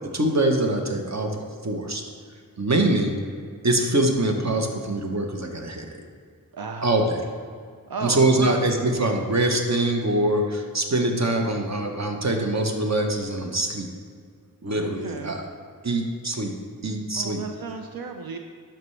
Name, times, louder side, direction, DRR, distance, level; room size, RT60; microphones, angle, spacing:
voice 1, 0.1-2.0 2.6-3.2 3.6-6.0 6.8-7.3 8.0-13.9 14.6-15.5 15.8-16.5 16.8-17.4, right 1 dB, 50° right, 3 dB, 1.0 m, -24 dB
voice 2, 6.5-6.9 7.9-8.7 14.6-15.4 17.1-18.4, right 4 dB, 85° right, 4 dB, 0.6 m, -34 dB
11.0 x 5.9 x 3.3 m, 2.1 s
wide cardioid pair, 65°, 35 cm